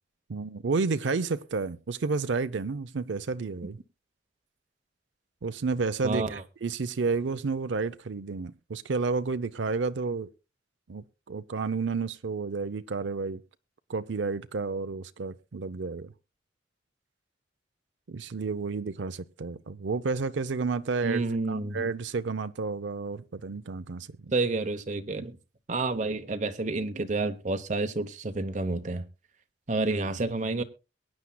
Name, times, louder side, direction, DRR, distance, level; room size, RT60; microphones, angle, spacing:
voice 1, 0.3-3.8 5.4-10.3 10.9-13.4 13.9-16.1 18.1-21.2 21.5-24.3, right 4 dB, 80° right, 0.5 m, -31 dB
voice 2, 6.0-6.4 21.0-21.8 24.3-25.4 25.7-29.0 29.7-30.6, right 3 dB, 40° right, 0.8 m, -29 dB
22.5 x 9.7 x 2.2 m
head